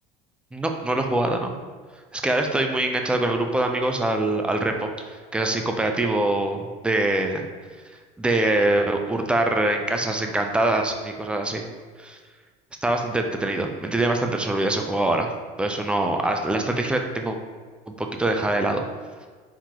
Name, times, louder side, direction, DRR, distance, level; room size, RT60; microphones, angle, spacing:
voice 1, 0.5-1.5 2.1-7.4 8.2-11.7 12.0-12.2 12.8-15.3 15.6-17.4 17.9-18.8, right 2 dB, 5° right, 4 dB, 0.4 m, -24 dB
4.6 x 3.8 x 2.9 m, 1.5 s
cardioid pair, 130°, 18 cm